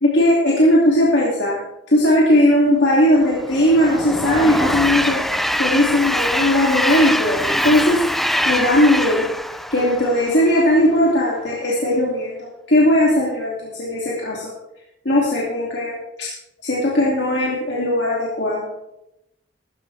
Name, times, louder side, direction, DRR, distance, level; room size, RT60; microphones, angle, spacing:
voice 1, 0.0-1.6 1.9-8.0 8.5-9.3 9.7-14.5 15.0-16.3 16.6-18.7, left 1 dB, 70° left, -5 dB, 2.7 m, -18 dB
Train, 3.1-10.6, equal, ahead, 0.3 m, -23 dB
15.0 x 13.5 x 3.5 m, 0.88 s
head